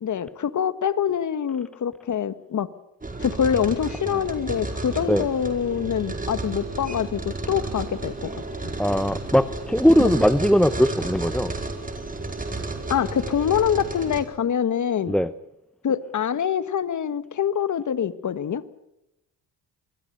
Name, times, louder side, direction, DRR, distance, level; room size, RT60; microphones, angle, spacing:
voice 1, 0.0-2.7 3.2-8.7 10.0-10.2 12.9-15.1 15.8-18.6, left 8 dB, 45° left, 14 dB, 1.6 m, -25 dB
sound 1, 3.0-14.2, right 3 dB, 20° right, 4.7 m, -32 dB
voice 2, 8.8-11.5 15.1-15.3, equal, ahead, 14 dB, 0.8 m, -20 dB
25.5 x 21.5 x 6.9 m, 0.86 s
cardioid pair, 90°, 40 cm